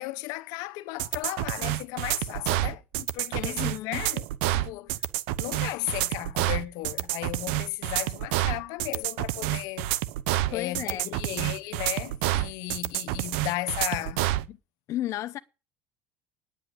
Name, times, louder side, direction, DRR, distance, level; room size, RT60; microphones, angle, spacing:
voice 1, 0.0-4.2 4.5-4.9 5.4-9.9 10.5-14.2, left 18 dB, 70° left, 1.0 m, -35 dB
sound 1, 1.0-14.5, right 15 dB, 80° right, 0.8 m, -28 dB
voice 2, 3.3-4.1 10.3-11.1 14.5-14.6 14.9-15.4, left 13 dB, 50° left, 0.7 m, -34 dB
10.0 x 7.9 x 8.8 m
supercardioid pair, 110°, 6 cm